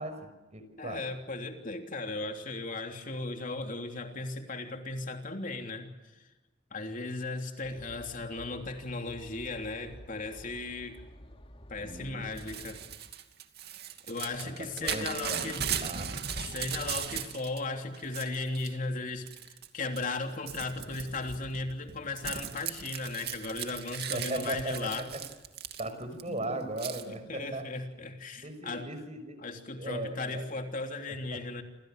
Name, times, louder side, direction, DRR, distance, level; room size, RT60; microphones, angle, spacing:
voice 1, 0.0-1.0 11.8-12.3 14.4-16.2 24.1-25.2 25.8-27.7 28.4-29.4 29.8-30.4 31.3-31.4, right 1 dB, 35° right, 10 dB, 5.7 m, -38 dB
voice 2, 0.8-5.9 6.7-11.0 11.7-12.9 14.1-15.7 16.4-25.1 26.3-26.7 27.1-28.9 29.4-31.6, left 3 dB, 45° left, 4 dB, 3.2 m, -36 dB
sound 1, 7.6-13.0, equal, 30° left, 2.5 m, -51 dB
Crumpling crinkling / Tearing, 12.4-17.6 17.9-18.7 19.3-19.7 20.0-26.2 26.8-27.0, right 8 dB, 60° right, 2.7 m, -38 dB
29.0 x 28.0 x 6.7 m, 1.1 s
head